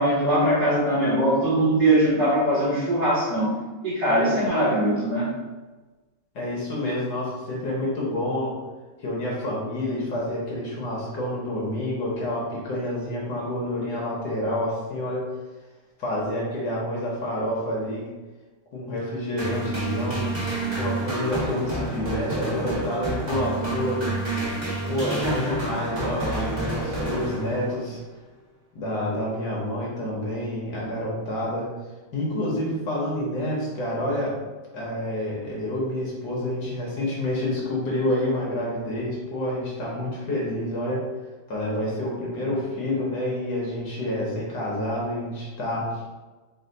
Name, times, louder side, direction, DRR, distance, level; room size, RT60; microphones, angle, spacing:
voice 1, 0.0-3.5 3.8-5.3 25.2-25.8, right 1 dB, 55° right, -7 dB, 1.3 m, -22 dB
voice 2, 6.3-8.6 9.0-15.3 16.0-18.1 18.7-20.3 20.8-24.1 24.9-28.0 28.7-31.7 32.1-34.4 34.7-41.1 41.5-46.0, left 1 dB, 60° left, -4 dB, 1.4 m, -28 dB
sound 1, 19.4-27.9, right 2 dB, 20° right, 0.7 m, -29 dB
4.3 x 2.1 x 3.9 m, 1.2 s
omnidirectional pair, 2.2 m